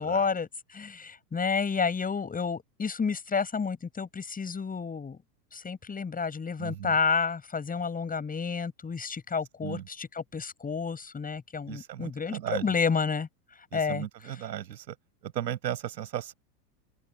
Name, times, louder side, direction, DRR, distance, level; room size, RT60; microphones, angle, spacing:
voice 1, 0.0-5.2 5.5-13.3 13.7-14.0, left 5 dB, 15° left, 7.8 m, -30 dB
voice 2, 6.6-7.0 9.6-9.8 11.7-12.8 13.7-14.9 15.2-16.3, right 11 dB, 90° right, 6.8 m, -36 dB
open air
hypercardioid pair, 120°, 49 cm